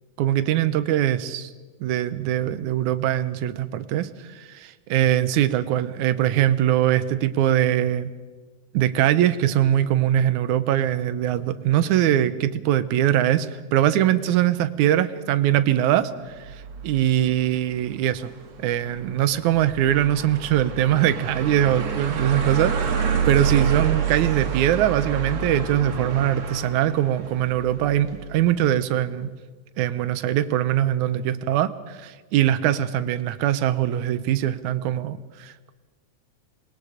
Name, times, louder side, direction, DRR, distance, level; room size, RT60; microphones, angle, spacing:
voice 1, 0.2-1.5 1.8-4.1 4.4-8.1 8.7-16.5 16.8-18.3 18.6-29.3 29.8-35.7, right 12 dB, 80° right, 13 dB, 2.2 m, -22 dB
sound 1, 16.3-28.5, right 6 dB, 65° right, 3.0 m, -28 dB
26.5 x 21.0 x 5.0 m, 1.4 s
omnidirectional pair, 3.4 m